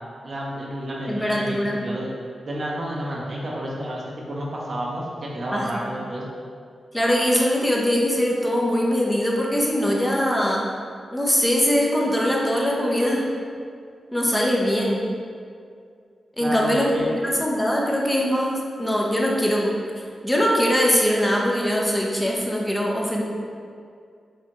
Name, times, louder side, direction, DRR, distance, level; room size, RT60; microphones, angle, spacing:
voice 1, 0.2-2.1 2.5-6.2 16.4-17.1, right 1 dB, 60° right, -4 dB, 0.7 m, -30 dB
voice 2, 1.1-1.8 5.5-5.9 6.9-10.7 11.1-13.3 14.1-15.0 16.4-19.7 20.2-23.2, equal, 15° left, -3 dB, 0.7 m, -22 dB
4.4 x 2.4 x 3.0 m, 2.2 s
supercardioid pair, 40°, 0 cm